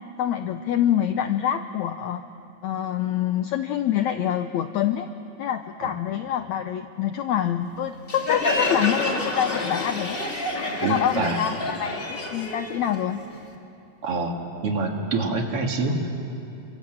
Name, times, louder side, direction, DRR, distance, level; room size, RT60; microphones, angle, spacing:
voice 1, 0.2-2.2 2.6-5.1 5.4-10.2 10.9-13.2, left 10 dB, 75° left, 9 dB, 1.7 m, -26 dB
Crowd, 8.1-13.5, left 2 dB, 20° left, 1.6 m, -28 dB
voice 2, 10.8-11.4 14.0-14.3 14.6-16.1, right 3 dB, 45° right, 2 dB, 2.5 m, -25 dB
29.5 x 25.0 x 7.7 m, 2.7 s
omnidirectional pair, 4.0 m